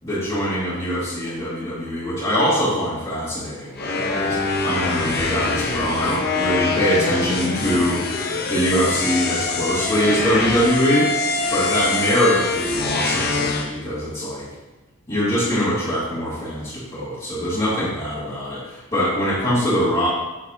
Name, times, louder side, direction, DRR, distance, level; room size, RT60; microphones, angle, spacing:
voice 1, 0.0-4.4 4.6-8.0 8.5-11.1 11.5-14.5 15.1-20.1, equal, 25° left, -15 dB, 2.8 m, -23 dB
sound 1, 3.8-13.7, left 3 dB, 50° left, 0.9 m, -24 dB
8.6 x 7.3 x 2.8 m, 1.1 s
head